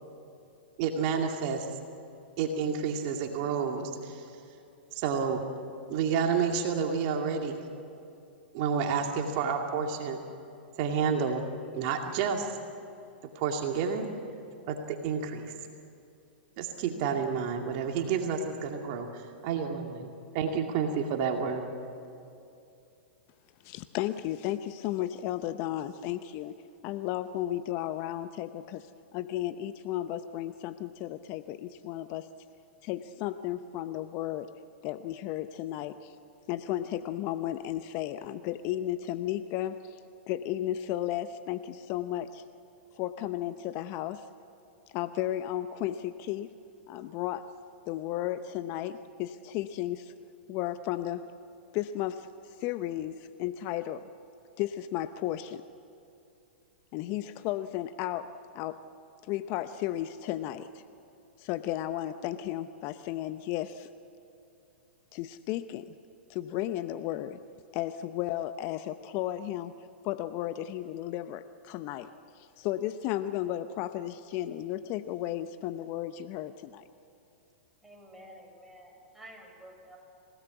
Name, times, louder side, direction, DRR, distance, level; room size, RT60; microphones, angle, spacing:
voice 1, 0.8-1.7 2.4-4.3 4.9-5.4 5.9-7.6 8.5-10.2 10.8-11.4 11.7-12.6 13.4-14.1 14.7-15.5 16.6-21.7, right 6 dB, 50° right, 3 dB, 2.3 m, -30 dB
voice 2, 23.6-26.5 26.8-28.9 29.1-32.3 32.8-34.5 34.8-36.2 36.5-42.4 42.9-44.3 44.9-46.5 46.9-47.4 47.9-50.1 50.5-51.2 51.7-54.0 54.6-55.6 56.9-58.3 58.5-58.8 59.3-60.8 61.4-63.9 65.1-65.9 66.3-67.4 67.7-72.1 72.3-76.8, left 13 dB, 40° left, 11 dB, 0.8 m, -34 dB
voice 3, 77.8-80.0, equal, 5° right, -2 dB, 6.6 m, -50 dB
28.0 x 17.5 x 8.3 m, 2.7 s
hypercardioid pair, 110°, 6 cm